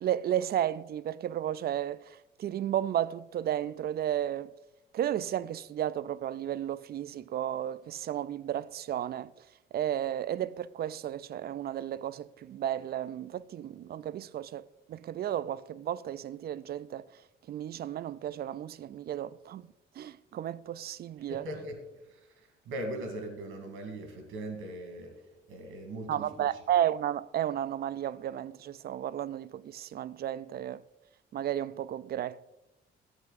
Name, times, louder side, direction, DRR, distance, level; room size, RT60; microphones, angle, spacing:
voice 1, 0.0-4.5 4.9-9.3 9.7-17.1 17.5-19.7 20.0-21.4 26.1-30.8 31.3-32.5, right 11 dB, 50° right, 0.4 m, -33 dB
voice 2, 21.3-21.8 22.0-26.6, right 1 dB, 90° right, 2.0 m, -40 dB
11.0 x 8.4 x 4.0 m
cardioid pair, 90°, 20 cm